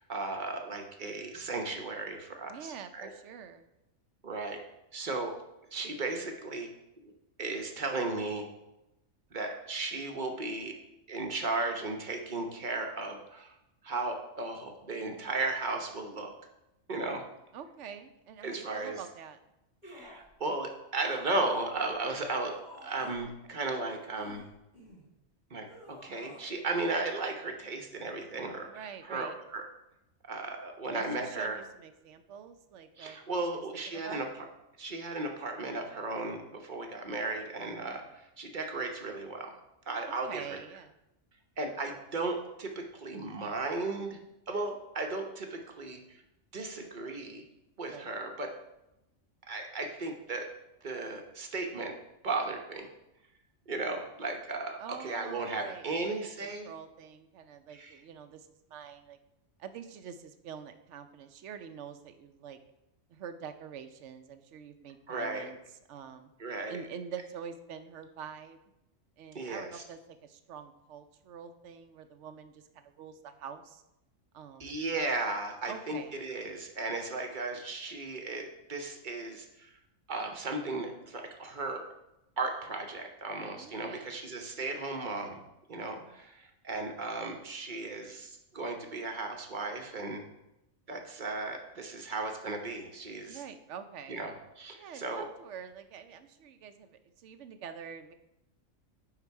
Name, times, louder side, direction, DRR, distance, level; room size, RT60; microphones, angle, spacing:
voice 1, 0.0-3.1 4.2-4.6 4.9-5.3 5.7-6.7 7.0-7.1 7.4-8.5 9.3-10.8 11.1-13.6 13.8-16.3 16.9-17.2 18.4-19.0 19.8-24.5 25.5-29.6 30.3-31.6 33.0-34.5 34.8-39.5 39.9-40.6 41.6-44.2 44.5-46.2 46.5-47.4 47.8-48.6 49.5-50.5 50.8-51.9 52.2-52.9 53.7-56.7 57.7-58.0 65.1-65.5 66.4-66.8 69.3-69.8 74.6-79.7 80.1-81.8 82.4-85.4 85.7-90.2 90.9-93.4 94.1-95.3, right 3 dB, 40° right, 4 dB, 0.9 m, -35 dB
voice 2, 2.5-3.7 17.5-19.4 28.6-29.4 30.9-34.2 39.9-40.9 47.9-48.1 54.8-59.2 59.6-62.6 63.1-65.6 65.9-66.3 66.7-68.6 69.2-73.8 74.3-74.8 75.7-76.2 83.5-84.1 85.7-86.2 93.2-94.2 94.8-98.1, right 7 dB, 70° right, 9 dB, 0.9 m, -46 dB
sound 1, 19.8-20.3 21.0-23.3 24.0-25.1 25.6-26.5 26.8-26.9, left 1 dB, 35° left, 1.9 m, -52 dB
9.6 x 4.0 x 4.6 m, 0.90 s
omnidirectional pair, 1.3 m